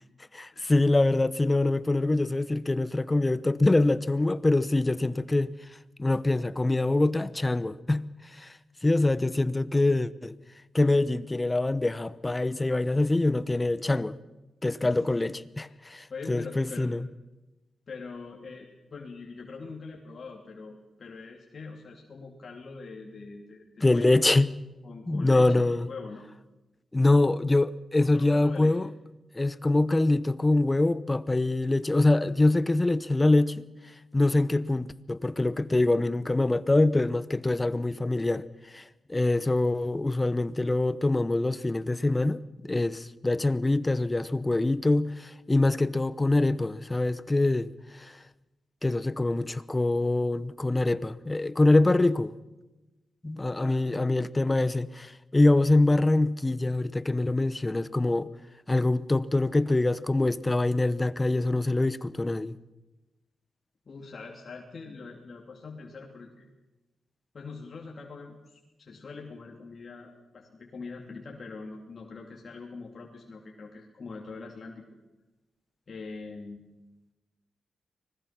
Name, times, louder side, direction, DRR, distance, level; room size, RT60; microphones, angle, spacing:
voice 1, 0.3-5.5 6.0-8.1 8.3-8.5 8.8-10.3 10.7-14.2 14.6-17.1 23.8-24.5 25.1-25.9 26.9-28.9 29.3-33.6 34.1-48.1 48.8-52.3 53.2-58.3 58.7-62.6, left 2 dB, 25° left, 1.0 m, -24 dB
voice 2, 14.8-15.3 15.6-15.8 16.1-16.9 17.9-24.3 24.8-26.3 28.0-28.9 53.6-54.0 63.9-66.5 67.3-74.8 75.9-76.6, left 4 dB, 55° left, 2.9 m, -43 dB
25.0 x 20.0 x 6.0 m
supercardioid pair, 50°, 0 cm